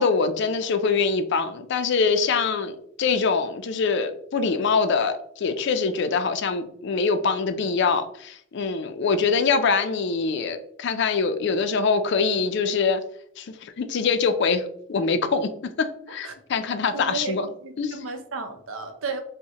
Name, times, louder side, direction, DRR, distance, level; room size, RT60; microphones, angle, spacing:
voice 1, 0.0-13.0 13.4-14.6 14.9-17.5 17.8-18.0, left 5 dB, 60° left, 9 dB, 0.4 m, -24 dB
voice 2, 16.9-17.3 17.6-19.2, right 4 dB, 80° right, 7 dB, 0.6 m, -33 dB
5.3 x 2.1 x 2.8 m, 0.67 s
head